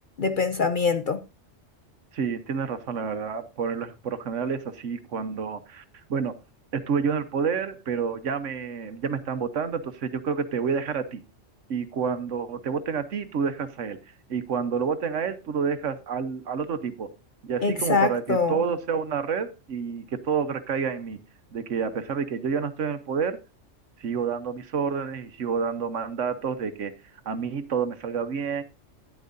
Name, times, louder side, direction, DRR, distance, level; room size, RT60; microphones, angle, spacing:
voice 1, 0.2-1.2 17.6-18.6, left 4 dB, 50° left, 0.7 m, -24 dB
voice 2, 2.1-5.8 6.1-6.4 6.7-11.2 11.7-14.0 14.3-17.1 17.4-21.2 21.5-23.4 24.0-26.9 27.3-28.6, right 6 dB, 75° right, 1.3 m, -29 dB
12.0 x 10.5 x 2.6 m
omnidirectional pair, 1.3 m